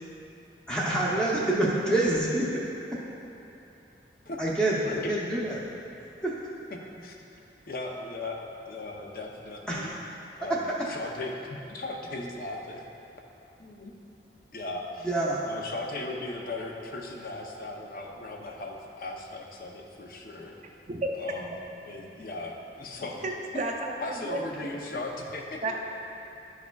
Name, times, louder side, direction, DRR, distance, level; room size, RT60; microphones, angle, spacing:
voice 1, 0.7-2.6 2.9-3.0 4.4-5.6 6.2-6.3 9.7-9.9 10.5-10.6 15.0-15.4, right 1 dB, 5° left, -6 dB, 0.7 m, -26 dB
voice 2, 4.3-4.6 4.8-5.2 6.7-7.2 7.7-9.9 10.4-10.6 10.9-12.8 13.6-13.9 14.5-15.1 15.5-20.5 21.2-23.3 24.0-25.7, left 2 dB, 50° left, 1 dB, 0.6 m, -37 dB
voice 3, 20.9-21.2 23.2-23.9 24.2-24.7 25.6-25.7, right 2 dB, 40° right, 1 dB, 0.4 m, -32 dB
10.5 x 4.8 x 2.3 m, 2.9 s
head